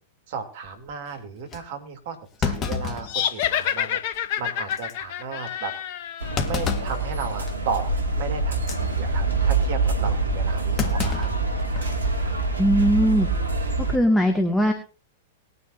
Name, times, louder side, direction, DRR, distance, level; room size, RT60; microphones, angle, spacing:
voice 1, 0.3-4.0 4.4-5.7 6.4-7.8 8.2-11.3, right 5 dB, 55° right, 7 dB, 3.1 m, -34 dB
Thump thud, 0.7-0.9 1.5-1.6 2.4-3.7 4.1-4.2 4.7-4.9 6.4-7.0 7.5-7.7 8.5-8.8 10.8-12.0 12.3-12.4 13.5-13.9, left 6 dB, 30° left, 1.8 m, -30 dB
sound 1, 3.0-6.5, left 10 dB, 50° left, 1.2 m, -28 dB
sound 2, 6.2-14.0, right 3 dB, 80° right, 2.4 m, -25 dB
voice 2, 12.6-13.3 13.9-14.7, equal, 5° left, 3 dB, 1.9 m, -19 dB
20.5 x 9.8 x 2.7 m, 0.35 s
figure-of-eight pair, 100°, 0 cm